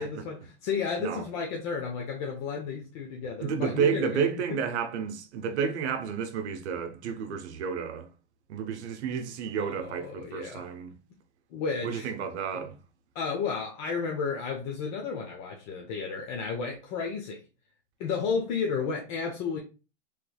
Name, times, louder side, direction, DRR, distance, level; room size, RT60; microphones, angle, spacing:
voice 1, 0.0-4.2 4.5-4.6 5.4-5.5 7.1-7.2 9.6-10.7 11.5-12.1 12.5-12.6 13.1-17.4 18.0-19.6, left 5 dB, 40° left, 0.6 m, -32 dB
voice 2, 3.4-8.1 8.5-10.9 11.8-12.8, right 7 dB, 70° right, 0.7 m, -31 dB
3.2 x 3.2 x 2.2 m
supercardioid pair, 145°, 34 cm